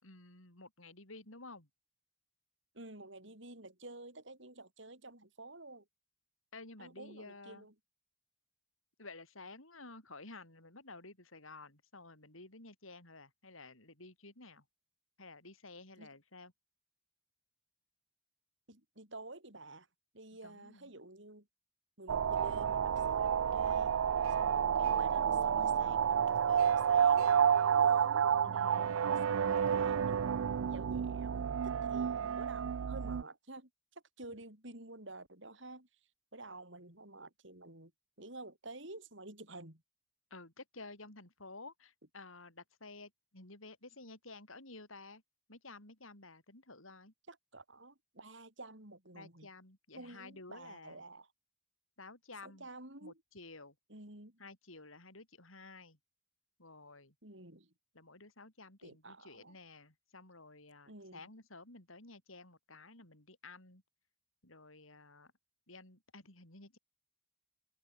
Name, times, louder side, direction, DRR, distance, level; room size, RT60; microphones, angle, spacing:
voice 1, 0.0-1.7 6.5-7.7 9.0-14.6 15.2-16.5 20.4-20.9 28.4-29.9 40.3-45.2 45.5-47.1 49.1-51.0 52.0-52.7 53.0-53.8 54.4-56.0 56.6-57.1 57.9-63.8 64.4-65.3 65.7-66.8, left 3 dB, 85° left, 7.2 m, -53 dB
voice 2, 2.7-5.9 6.8-7.7 16.0-16.1 18.7-19.9 20.1-21.5 22.0-23.9 24.4-27.3 27.7-28.2 29.2-35.9 36.3-37.9 38.2-39.8 47.3-49.5 49.9-51.3 52.4-53.2 53.9-54.4 57.2-57.7 58.8-59.5 60.9-61.2, right 2 dB, 65° right, 5.7 m, -51 dB
sound 1, 22.1-33.2, right 8 dB, 90° right, 0.4 m, -30 dB
head